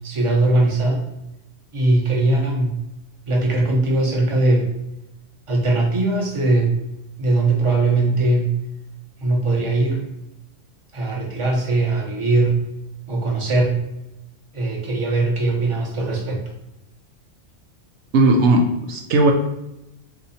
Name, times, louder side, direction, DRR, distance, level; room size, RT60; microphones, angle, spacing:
voice 1, 0.0-1.0 1.7-2.7 3.3-4.7 5.5-6.7 7.2-8.5 9.2-10.0 10.9-12.5 13.1-13.7 14.5-16.4, right 2 dB, 30° right, -2 dB, 0.9 m, -20 dB
voice 2, 18.1-19.3, right 2 dB, 75° right, 2 dB, 0.9 m, -16 dB
3.9 x 2.7 x 4.2 m, 0.90 s
omnidirectional pair, 1.2 m